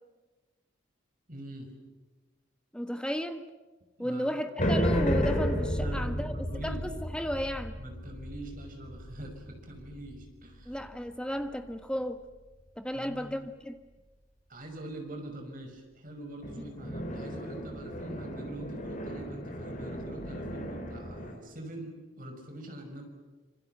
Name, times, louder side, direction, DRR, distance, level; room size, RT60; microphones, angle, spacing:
voice 1, 1.3-1.7 4.0-4.4 5.8-6.8 7.8-10.7 12.9-13.3 14.5-23.0, right 1 dB, 40° right, 3 dB, 5.7 m, -44 dB
voice 2, 2.7-3.5 4.0-6.3 6.6-7.8 10.7-12.2 12.8-13.8 16.6-16.7, equal, 5° left, 7 dB, 1.4 m, -34 dB
sound 1, 4.6-11.1 16.4-21.3, equal, 40° left, 4.0 m, -33 dB
26.5 x 24.5 x 8.0 m, 1.2 s
head